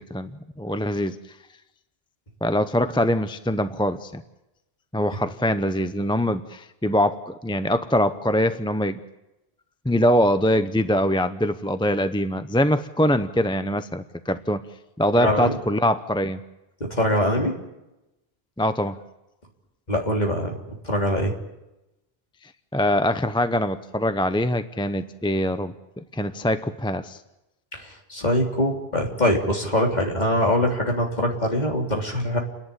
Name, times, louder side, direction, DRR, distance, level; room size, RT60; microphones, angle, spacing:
voice 1, 0.1-1.4 2.4-4.2 4.9-9.0 9.8-14.7 15.0-16.4 18.6-19.0 22.4-27.2, equal, 5° left, 10 dB, 0.6 m, -23 dB
voice 2, 15.1-15.6 16.9-17.6 19.9-20.6 20.8-21.3 27.7-32.4, left 1 dB, 45° left, 1 dB, 3.6 m, -23 dB
29.5 x 11.0 x 9.9 m, 0.95 s
omnidirectional pair, 1.1 m